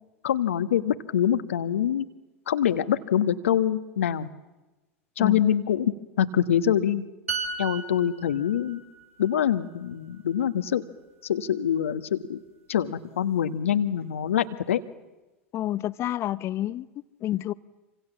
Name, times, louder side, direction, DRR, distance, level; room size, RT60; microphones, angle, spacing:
voice 1, 0.2-2.0 2.5-4.3 5.2-7.0 7.6-8.8 9.2-10.8 11.2-12.4 12.7-14.8, left 9 dB, 70° left, 10 dB, 1.4 m, -25 dB
sound 1, 7.3-10.9 11.2-11.4, right 4 dB, 85° right, 2.5 m, -37 dB
voice 2, 15.5-16.9 17.2-17.5, left 13 dB, 40° left, 16 dB, 1.0 m, -28 dB
27.0 x 26.5 x 7.3 m, 1.1 s
figure-of-eight pair, 85°, 7 cm